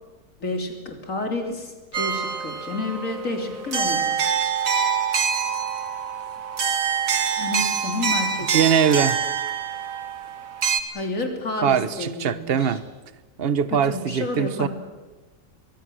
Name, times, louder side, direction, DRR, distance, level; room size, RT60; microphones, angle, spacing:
voice 1, 0.4-4.2 7.4-8.6 10.9-12.8 13.7-14.7, left 2 dB, 55° left, 3.6 m, -30 dB
sound 1, 1.9-10.8, right 6 dB, 60° right, 2.0 m, -25 dB
voice 2, 8.5-9.2 11.6-12.8 13.4-14.7, right 8 dB, 45° right, 1.1 m, -22 dB
24.5 x 21.5 x 7.7 m
omnidirectional pair, 1.6 m